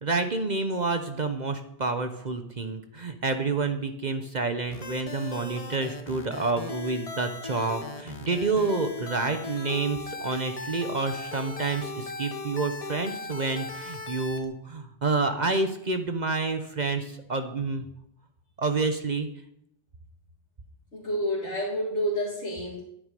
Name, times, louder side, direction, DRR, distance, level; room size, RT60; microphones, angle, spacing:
voice 1, 0.0-17.9 18.6-19.3, right 3 dB, 40° right, 7 dB, 0.9 m, -29 dB
sound 1, 4.7-14.4, left 3 dB, 35° left, 1.0 m, -38 dB
voice 2, 20.9-22.8, equal, 70° left, -4 dB, 2.3 m, -29 dB
9.9 x 9.5 x 5.2 m, 0.78 s
omnidirectional pair, 1.2 m